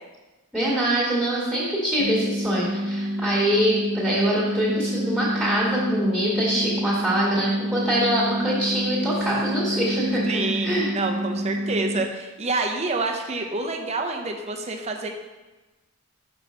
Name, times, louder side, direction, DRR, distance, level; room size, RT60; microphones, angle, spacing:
voice 1, 0.5-10.9, right 1 dB, 5° right, -6 dB, 1.8 m, -24 dB
sound 1, 2.0-12.0, equal, 90° right, 1.1 m, -28 dB
voice 2, 10.3-15.1, right 3 dB, 30° right, 3 dB, 0.7 m, -28 dB
5.5 x 4.3 x 6.2 m, 1.2 s
head